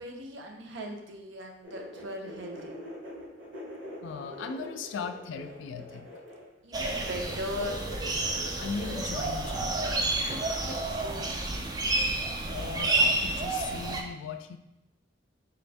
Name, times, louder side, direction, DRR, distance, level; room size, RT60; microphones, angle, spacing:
voice 1, 0.0-2.8 6.6-7.8 10.2-11.5, equal, 65° right, 2 dB, 0.6 m, -39 dB
sound 1, 1.6-6.5 6.8-9.1, equal, 85° right, 1.3 m, -43 dB
voice 2, 4.0-6.1 8.6-9.8 12.5-14.6, left 5 dB, 70° left, 8 dB, 0.3 m, -38 dB
sound 2, 6.7-14.0, right 2 dB, 20° right, 0.3 m, -30 dB
3.7 x 2.5 x 3.3 m, 0.95 s
head